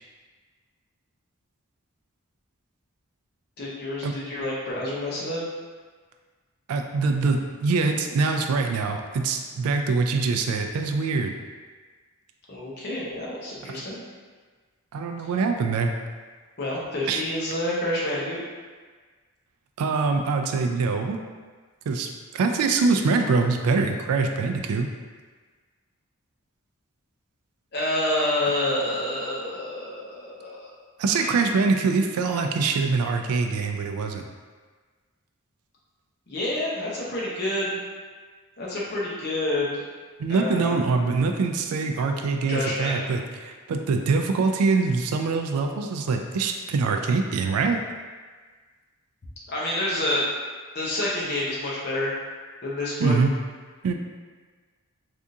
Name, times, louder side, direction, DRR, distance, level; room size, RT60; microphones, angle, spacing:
voice 1, 3.6-5.4 12.5-14.0 16.6-18.4 27.7-30.7 31.1-31.4 36.3-37.8 38.6-39.8 40.3-40.8 42.5-43.0 49.5-50.3 50.7-52.1 52.6-53.2, left 1 dB, 50° left, -6 dB, 0.8 m, -28 dB
voice 2, 6.7-11.3 13.7-13.8 14.9-15.9 17.1-17.2 19.8-21.2 21.9-24.9 31.0-34.2 40.2-47.8 53.0-53.3 53.8-53.9, right 4 dB, 85° right, 5 dB, 0.3 m, -24 dB
3.5 x 2.4 x 2.7 m, 1.5 s
head